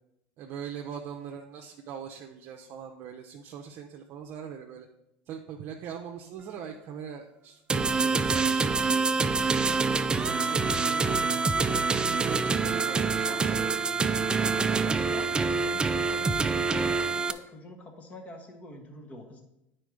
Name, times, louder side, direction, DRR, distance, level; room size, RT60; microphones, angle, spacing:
voice 1, 0.4-4.9 5.3-9.8 10.2-13.9 14.4-14.5, right 7 dB, 50° right, 2 dB, 0.7 m, -42 dB
sound 1, 7.7-17.3, right 4 dB, 15° right, 0.4 m, -26 dB
voice 2, 13.3-13.7 14.3-19.4, left 1 dB, 25° left, 4 dB, 1.2 m, -45 dB
9.1 x 4.4 x 4.9 m, 0.86 s
supercardioid pair, 125°, 6 cm